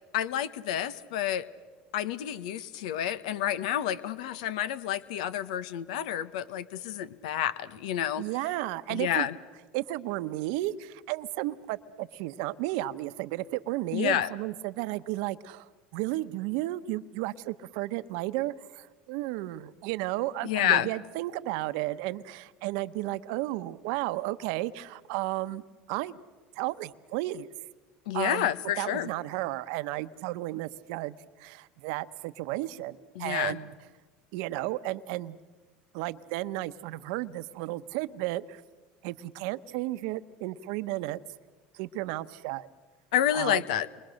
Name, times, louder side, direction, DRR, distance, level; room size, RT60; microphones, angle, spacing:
voice 1, 0.1-1.5 1.9-8.2 8.9-9.3 13.9-14.3 20.4-20.9 28.1-29.1 33.1-33.6 43.1-43.9, left 11 dB, 85° left, 15 dB, 1.1 m, -29 dB
voice 2, 8.2-9.3 9.7-26.2 26.5-27.5 28.1-28.5 28.8-33.7 34.3-35.4 35.9-38.6 39.0-41.2 41.7-42.7 43.3-43.6, right 17 dB, 75° right, 14 dB, 1.0 m, -33 dB
29.0 x 23.5 x 6.5 m, 1.3 s
supercardioid pair, 100°, 4 cm